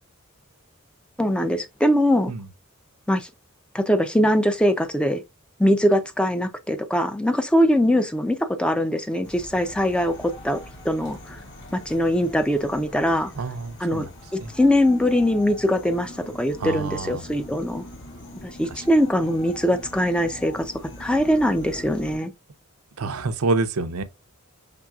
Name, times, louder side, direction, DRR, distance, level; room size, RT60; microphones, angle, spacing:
voice 1, 1.2-2.3 3.1-3.3 3.7-5.2 5.6-11.4 11.7-13.3 13.8-14.1 14.3-17.8 18.4-20.7 21.0-22.3, equal, 5° left, 0.4 m, -22 dB
sound 1, 9.2-22.2, left 1 dB, 55° left, 1.9 m, -42 dB
voice 2, 13.4-14.1 14.4-14.5 16.6-17.2 18.7-18.8 23.0-24.0, right 3 dB, 80° right, 0.6 m, -27 dB
6.0 x 3.5 x 2.3 m
head